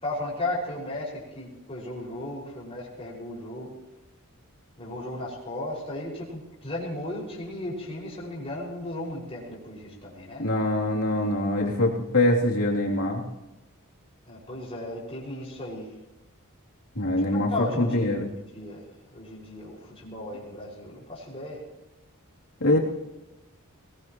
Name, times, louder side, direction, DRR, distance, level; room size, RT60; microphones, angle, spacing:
voice 1, 0.0-3.7 4.8-10.5 14.3-15.9 17.3-18.3 18.5-18.8 19.1-21.6, left 1 dB, 25° left, -6 dB, 5.6 m, -35 dB
voice 2, 10.4-13.2 16.9-18.3 22.6-22.8, left 1 dB, 80° left, -2 dB, 3.0 m, -24 dB
21.5 x 19.5 x 3.0 m, 1.0 s
head